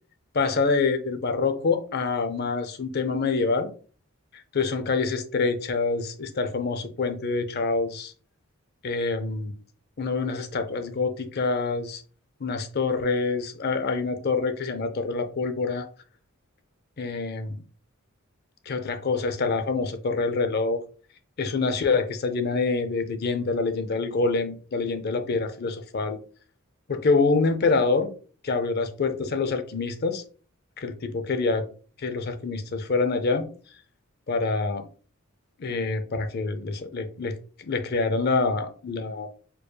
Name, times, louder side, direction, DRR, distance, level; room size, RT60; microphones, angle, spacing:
voice 1, 0.3-3.7 4.5-8.1 8.8-9.5 10.0-12.0 12.4-15.9 17.0-17.6 18.7-20.8 21.4-26.2 26.9-28.1 28.4-30.2 30.8-31.7 32.0-33.5 34.3-34.8 35.6-39.4, left 4 dB, 50° left, 0.5 m, -26 dB
4.5 x 3.1 x 2.2 m
head